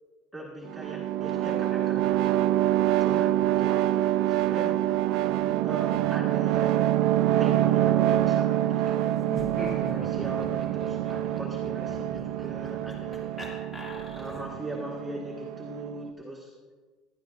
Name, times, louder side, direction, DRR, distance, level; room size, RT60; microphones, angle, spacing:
voice 1, 0.3-2.5 3.0-4.8 5.6-7.0 7.4-9.1 9.7-13.3 14.1-16.5, equal, 5° left, -4 dB, 1.8 m, -40 dB
sound 1, 0.7-16.1, right 13 dB, 65° right, 0.5 m, -26 dB
Laughter, 9.2-14.6, equal, 20° left, 2.7 m, -42 dB
16.0 x 12.0 x 2.7 m, 1.4 s
cardioid pair, 145°, 0 cm